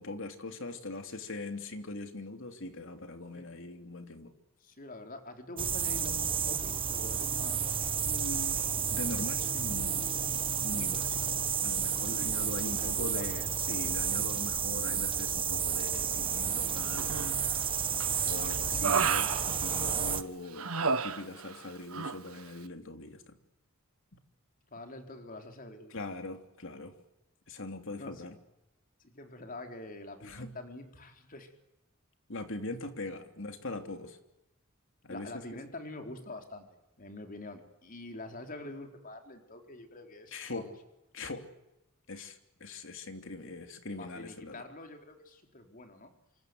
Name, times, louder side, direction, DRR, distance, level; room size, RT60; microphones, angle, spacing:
voice 1, 0.0-4.3 8.0-10.1 10.6-17.3 18.2-20.7 21.0-23.4 25.9-26.9 27.5-28.4 30.2-30.5 32.3-34.2 35.0-35.4 40.3-40.7 41.1-41.4 42.1-44.6, left 2 dB, 65° left, 7 dB, 3.2 m, -41 dB
voice 2, 4.6-7.8 12.2-13.4 20.0-20.2 24.7-25.9 28.0-28.3 29.0-31.5 35.1-36.7 37.0-40.7 44.0-46.1, left 2 dB, 40° left, 5 dB, 4.3 m, -46 dB
sound 1, 5.6-20.2, right 7 dB, 25° right, 1.2 m, -31 dB
Human voice, 17.0-17.6 18.0-20.1 20.6-21.6 21.9-22.2, right 5 dB, 90° right, 1.5 m, -32 dB
27.5 x 25.5 x 8.0 m, 0.92 s
head